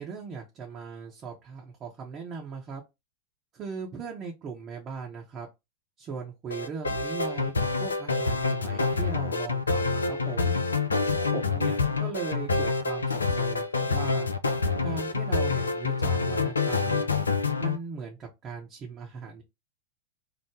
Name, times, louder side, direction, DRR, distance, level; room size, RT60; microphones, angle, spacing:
voice 1, 0.0-2.8 3.5-5.5 6.0-10.6 11.3-14.3 14.8-17.1 17.6-19.4, right 5 dB, 30° right, 0.7 m, -38 dB
sound 1, 6.5-17.8, left 4 dB, 75° left, 0.3 m, -27 dB
3.2 x 2.0 x 3.5 m
figure-of-eight pair, 90°, 0 cm